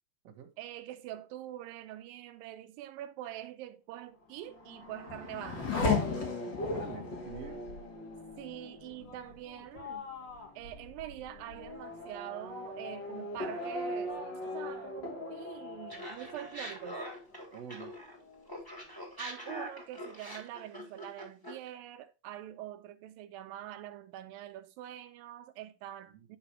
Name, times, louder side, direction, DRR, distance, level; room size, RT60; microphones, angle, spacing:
voice 1, 0.6-5.8 8.4-10.1 10.6-14.2 14.4-17.0 19.2-26.4, right 13 dB, 85° right, 2.3 m, -44 dB
Race car auto racing / Accelerating revving vroom, 4.3-17.6 17.9-18.6, left 3 dB, 40° left, 2.1 m, -38 dB
voice 2, 6.6-7.7 16.2-16.5 17.5-18.0 26.1-26.4, right 7 dB, 55° right, 2.0 m, -47 dB
Laughter, 15.9-18.2 18.5-21.7, equal, 5° left, 1.9 m, -43 dB
9.7 x 5.9 x 2.8 m
omnidirectional pair, 4.1 m